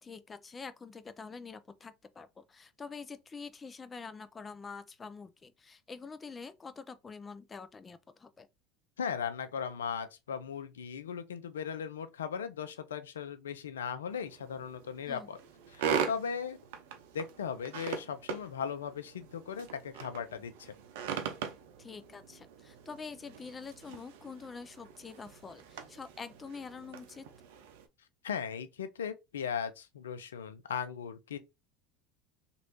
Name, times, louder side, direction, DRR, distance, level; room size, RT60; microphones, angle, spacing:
voice 1, 0.0-8.5 15.1-15.3 21.8-27.3, left 5 dB, 25° left, 0.5 m, -46 dB
voice 2, 9.0-15.4 15.7-16.6 17.1-20.7 28.2-31.4, left 7 dB, 85° left, 0.4 m, -38 dB
sound 1, 14.1-27.9, right 7 dB, 70° right, 0.6 m, -41 dB
3.1 x 2.6 x 3.0 m
hypercardioid pair, 80°, 0 cm